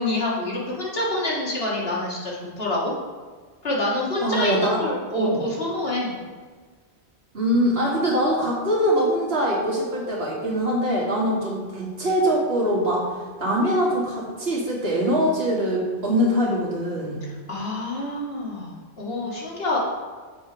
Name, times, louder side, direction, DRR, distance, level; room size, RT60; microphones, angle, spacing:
voice 1, 0.0-2.9 3.6-6.1 17.5-19.8, left 1 dB, 60° left, -5 dB, 2.1 m, -27 dB
voice 2, 4.2-4.8 5.2-5.4 7.3-13.1 13.4-17.2, equal, 65° right, -4 dB, 2.0 m, -23 dB
7.3 x 5.1 x 5.0 m, 1.5 s
omnidirectional pair, 1.1 m